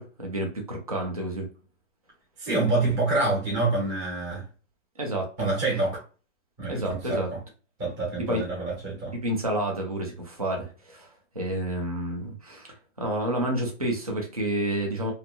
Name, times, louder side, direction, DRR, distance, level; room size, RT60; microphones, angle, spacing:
voice 1, 0.0-1.5 5.0-5.3 6.7-7.3 8.2-8.4 9.1-11.1 11.4-15.1, right 1 dB, 30° right, 0.4 m, -29 dB
voice 2, 2.4-4.4 5.4-6.0 6.6-7.4 7.8-9.1, right 2 dB, 15° right, 0.8 m, -26 dB
2.7 x 2.4 x 2.2 m
hypercardioid pair, 175°, 39 cm